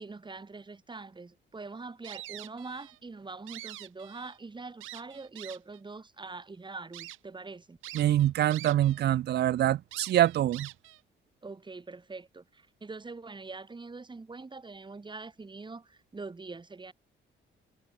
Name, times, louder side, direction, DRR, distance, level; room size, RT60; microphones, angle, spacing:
voice 1, 0.0-7.8 11.4-16.9, right 3 dB, 25° right, 2.9 m, -43 dB
sound 1, 2.0-3.0 3.3-4.4 4.8-5.8 6.4-6.5 6.9-7.2 7.8-9.0 9.3-9.4 9.9-11.0, right 16 dB, 85° right, 0.9 m, -45 dB
voice 2, 7.9-10.7, right 12 dB, 55° right, 0.4 m, -25 dB
cardioid pair, 90°, 20 cm